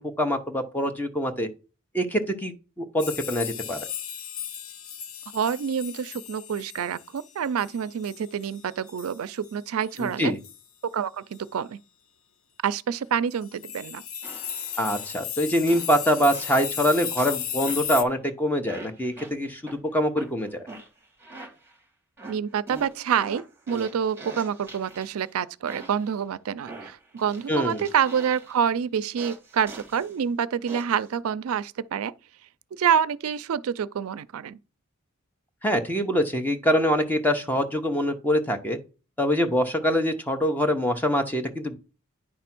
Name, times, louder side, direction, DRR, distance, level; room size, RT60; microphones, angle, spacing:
voice 1, 0.0-1.5 1.9-3.8 10.0-10.4 14.8-19.6 19.9-20.7 27.5-27.8 35.6-38.8 39.2-41.7, equal, 10° left, 0.8 m, -24 dB
sound 1, 3.0-9.2 9.4-9.5 9.8-10.1 10.4-10.6 11.3-11.4 13.3-18.0, left 9 dB, 85° left, 0.7 m, -35 dB
voice 2, 5.3-10.3 10.9-11.8 12.6-14.0 22.3-32.1 32.7-34.6, right 7 dB, 85° right, 0.4 m, -27 dB
sound 2, 14.2-15.2 15.7-16.8 17.2-18.1 18.7-19.8 20.2-21.8 22.2-25.3 25.7-26.2 26.7-28.7 29.2-30.2 30.7-31.1, right 2 dB, 10° right, 1.7 m, -43 dB
9.5 x 3.4 x 5.9 m
head